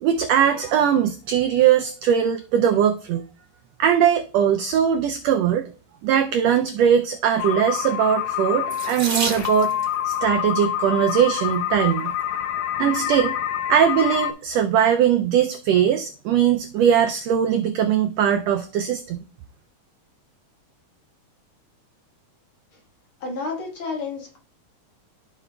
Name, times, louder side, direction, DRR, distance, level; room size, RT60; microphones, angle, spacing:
voice 1, 0.0-3.2 3.8-5.6 6.0-9.7 10.0-12.1 12.8-13.3 13.7-19.2, right 9 dB, 85° right, 6 dB, 1.4 m, -20 dB
sound 1, 7.4-14.3, left 10 dB, 75° left, 1.9 m, -27 dB
Water tap faucet / Sink (filling or washing), 8.7-9.9 11.0-11.4 12.0-12.1 12.5-12.6, right 4 dB, 45° right, 1.5 m, -30 dB
voice 2, 23.2-24.4, left 4 dB, 50° left, 1 dB, 2.0 m, -30 dB
14.0 x 4.9 x 2.3 m, 0.40 s
omnidirectional pair, 3.5 m